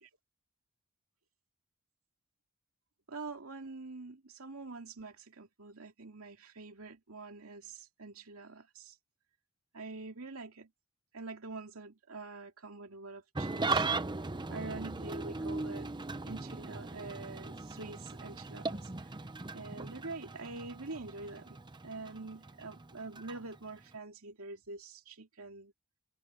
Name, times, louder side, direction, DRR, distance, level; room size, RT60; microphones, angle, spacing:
voice 1, 3.1-8.9 9.7-10.7 11.1-13.8 14.5-15.9 16.3-18.9 19.5-21.6 21.8-25.7, right 3 dB, 75° right, 2.5 m, -45 dB
Engine starting / Idling, 13.3-23.9, right 3 dB, 20° right, 0.7 m, -38 dB
head